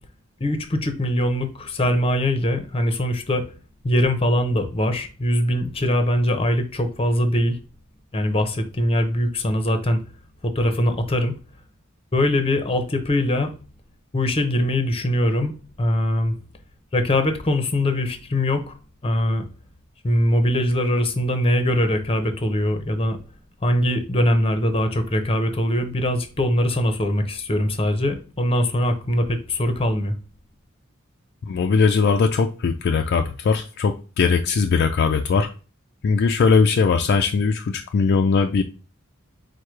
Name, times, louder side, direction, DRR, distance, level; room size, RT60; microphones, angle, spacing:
voice 1, 0.4-3.5 3.8-7.6 8.1-10.0 10.4-11.4 12.1-13.5 14.1-15.5 15.8-16.3 16.9-18.7 19.0-19.4 20.0-23.2 23.6-30.1, left 1 dB, 30° left, 0.7 m, -22 dB
voice 2, 31.5-35.5 36.0-38.6, left 5 dB, 50° left, 0.3 m, -20 dB
4.7 x 2.1 x 4.5 m
head